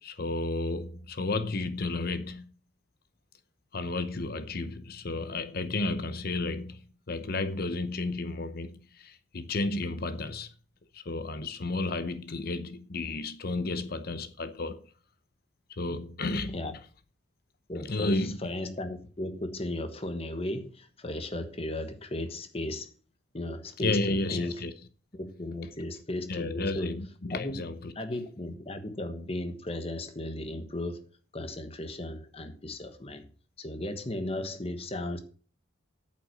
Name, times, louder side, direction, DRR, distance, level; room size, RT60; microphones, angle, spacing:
voice 1, 0.0-2.4 3.7-10.5 10.9-14.8 15.7-16.6 17.8-18.4 23.8-24.7 26.3-27.9, left 2 dB, 50° left, 0.8 m, -32 dB
voice 2, 17.7-22.9 23.3-24.6 25.1-27.0 27.3-27.5 27.9-31.0 31.3-33.2 33.6-35.2, left 1 dB, 30° left, 1.2 m, -35 dB
8.9 x 7.5 x 6.3 m
head